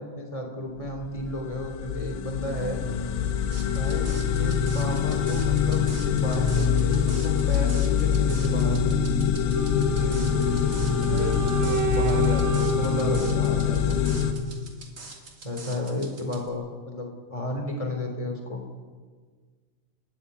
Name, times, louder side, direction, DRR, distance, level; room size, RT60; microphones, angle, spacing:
voice 1, 0.0-2.9 3.7-8.8 9.9-10.7 11.0-14.0 15.4-18.6, left 1 dB, 10° left, 3 dB, 2.0 m, -33 dB
sound 1, 0.9-14.3, left 7 dB, 85° left, 4.1 m, -24 dB
sound 2, 3.5-16.5, right 3 dB, 25° right, 1.7 m, -45 dB
Wind instrument woodwind instrument, 9.5-14.6, right 4 dB, 80° right, 4.1 m, -31 dB
30.0 x 11.5 x 9.4 m, 1.5 s
omnidirectional pair, 5.8 m